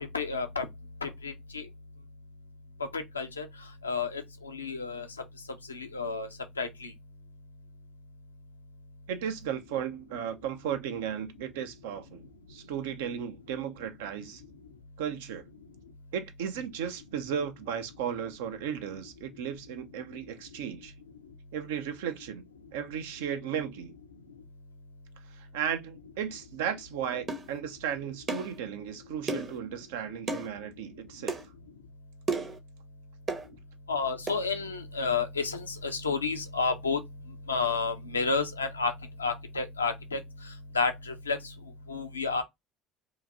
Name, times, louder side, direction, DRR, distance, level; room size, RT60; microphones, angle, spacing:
voice 1, 0.1-0.7 1.0-1.6 2.9-3.5 3.8-4.2 4.5-5.1 5.7-6.3 6.6-6.9 33.9-37.0 37.5-38.9 39.2-40.2 40.7-41.4 41.9-42.4, left 4 dB, 90° left, 0.4 m, -30 dB
voice 2, 9.1-12.2 12.5-14.4 15.0-15.5 16.1-20.9 21.5-22.4 22.7-23.9 25.3-31.4 33.5-33.6, right 8 dB, 70° right, 0.4 m, -35 dB
sound 1, 27.3-27.5 28.3-28.5 29.3-29.6 30.3-30.5 31.3-31.4 32.3-32.6 33.3-33.5 34.3-34.4, right 3 dB, 35° right, 0.8 m, -32 dB
2.8 x 2.5 x 2.5 m
figure-of-eight pair, 60°, 0 cm